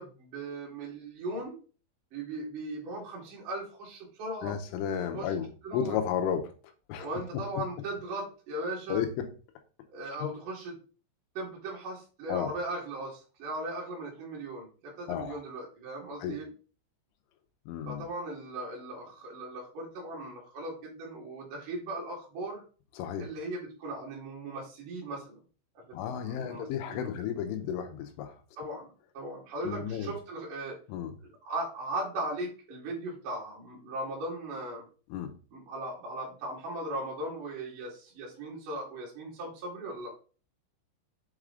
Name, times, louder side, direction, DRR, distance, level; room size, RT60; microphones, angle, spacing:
voice 1, 0.0-1.6 2.1-4.5 5.1-5.3 5.6-6.0 6.9-9.0 9.9-10.7 11.3-16.5 17.9-22.6 23.2-25.4 25.7-27.1 28.6-28.8 29.1-30.8 31.4-34.8 35.5-40.1, right 1 dB, 50° right, 3.1 m, -38 dB
voice 2, 4.4-6.5 6.9-7.1 7.3-7.4 8.9-9.3 12.3-12.5 15.1-15.4 16.2-16.4 17.7-18.0 23.0-23.3 25.9-28.4 29.6-30.1 30.9-31.1 35.1-35.3, left 8 dB, 80° left, 3.4 m, -33 dB
7.6 x 4.8 x 3.8 m
omnidirectional pair, 5.8 m